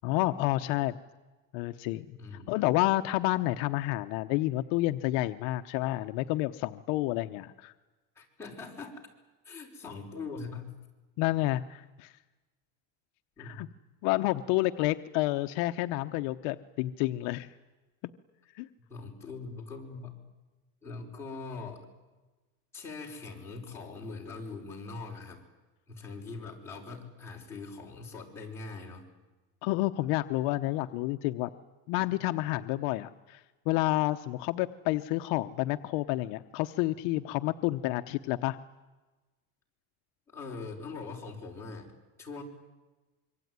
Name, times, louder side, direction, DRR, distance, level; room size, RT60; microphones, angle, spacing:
voice 1, 0.0-1.0 1.5-2.2 2.5-7.7 11.2-12.1 13.4-13.7 14.0-17.5 18.5-18.7 29.6-31.5 31.9-38.6, left 17 dB, 60° left, 8 dB, 0.9 m, -29 dB
voice 2, 2.2-2.5 8.1-9.1 9.4-10.8 13.4-13.7 18.9-20.2 20.8-21.8 22.7-25.4 25.9-29.1 40.3-41.9 42.2-42.4, left 4 dB, 5° left, -3 dB, 5.1 m, -42 dB
26.0 x 24.0 x 9.6 m, 1.2 s
cardioid pair, 175°, 37 cm